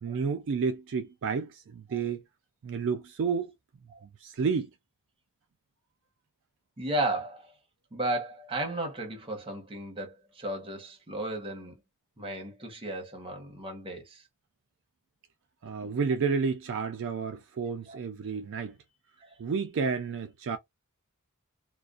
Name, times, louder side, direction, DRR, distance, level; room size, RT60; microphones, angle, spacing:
voice 1, 0.0-2.2 2.6-3.5 4.2-4.7 15.6-18.7 19.4-20.6, right 5 dB, 60° right, 0.4 m, -30 dB
voice 2, 6.8-7.5 7.9-11.7 12.2-14.2 17.9-18.0 19.2-19.3, right 1 dB, 25° right, 0.9 m, -34 dB
2.4 x 2.1 x 2.4 m
head